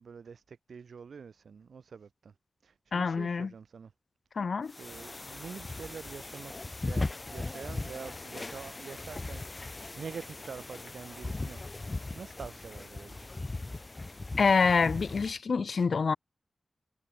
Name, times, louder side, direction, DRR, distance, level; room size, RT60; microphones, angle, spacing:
voice 1, 0.0-2.3 2.6-3.9 4.3-4.5 4.8-13.5, right 6 dB, 90° right, 3.6 m, -46 dB
voice 2, 2.9-3.5 4.4-4.7 14.4-16.2, left 5 dB, 65° left, 0.5 m, -26 dB
sound 1, 4.7-15.4, left 2 dB, 25° left, 1.1 m, -39 dB
wide cardioid pair, 140°, 0 cm